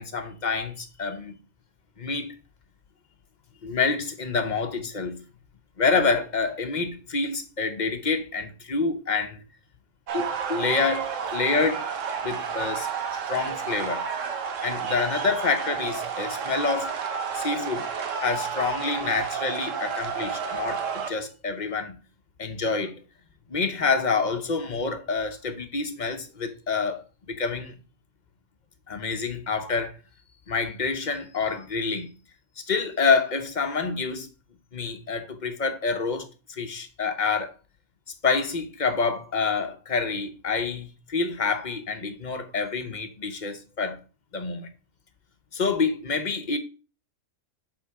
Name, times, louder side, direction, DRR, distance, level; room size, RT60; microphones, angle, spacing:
voice 1, 0.0-1.3 2.0-2.3 3.6-5.2 5.8-9.4 10.1-11.8 12.2-14.1 14.6-16.9 17.3-17.9 18.2-22.0 22.4-22.9 23.5-27.7 28.9-30.0 30.5-32.1 32.6-34.3 34.7-37.5 38.2-44.0 44.3-44.7 45.5-46.6, left 4 dB, 40° left, 0.8 m, -27 dB
sound 1, 10.1-21.1, right 6 dB, 65° right, 1.2 m, -31 dB
8.2 x 3.7 x 4.7 m
omnidirectional pair, 1.5 m